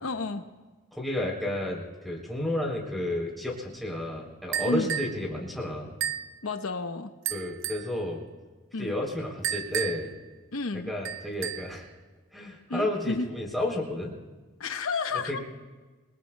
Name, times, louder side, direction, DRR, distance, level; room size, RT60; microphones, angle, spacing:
voice 1, 0.0-0.4 4.6-4.9 6.4-7.1 8.7-8.9 10.5-10.9 12.7-13.3 14.6-15.4, left 3 dB, 85° left, 7 dB, 0.9 m, -31 dB
voice 2, 0.9-5.9 7.3-8.2 8.8-10.1 10.9-11.8 12.3-14.1 15.3-15.4, left 1 dB, ahead, -3 dB, 3.2 m, -31 dB
sound 1, 4.5-5.2 6.0-6.3 7.3-7.9 9.4-10.2 11.1-11.8, right 10 dB, 65° right, 0.6 m, -32 dB
28.0 x 22.0 x 2.2 m, 1.2 s
head